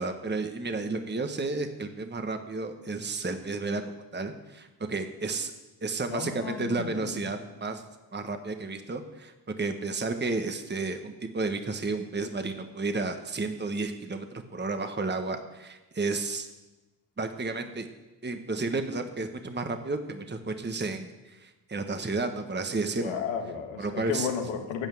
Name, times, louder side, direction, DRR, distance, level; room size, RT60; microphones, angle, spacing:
voice 1, 0.0-3.8 4.1-5.5 5.8-7.8 8.1-16.5 17.2-17.9 18.2-23.2 23.8-24.3, right 3 dB, 20° right, 7 dB, 1.3 m, -32 dB
voice 2, 6.1-7.3 23.0-24.9, left 7 dB, 90° left, 5 dB, 1.6 m, -33 dB
9.1 x 8.8 x 7.6 m, 1.1 s
hypercardioid pair, 40°, 47 cm